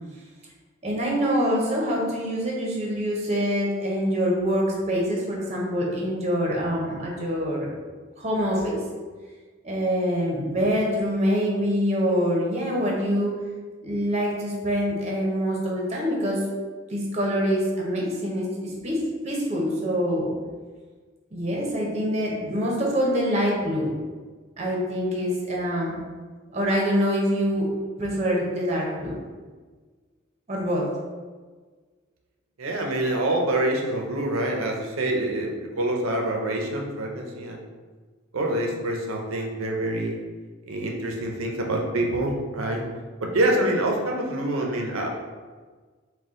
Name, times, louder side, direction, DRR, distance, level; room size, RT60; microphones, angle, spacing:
voice 1, 0.8-7.7 8.2-8.8 9.6-13.3 13.8-16.4 16.9-20.3 21.3-23.9 24.6-26.0 26.5-27.7 28.0-29.1 30.5-30.9, equal, 30° right, -3 dB, 0.8 m, -25 dB
voice 2, 32.6-37.6 38.3-40.2 40.7-42.8 43.2-45.1, right 1 dB, 85° right, 1 dB, 0.6 m, -26 dB
4.1 x 2.3 x 3.6 m, 1.4 s
head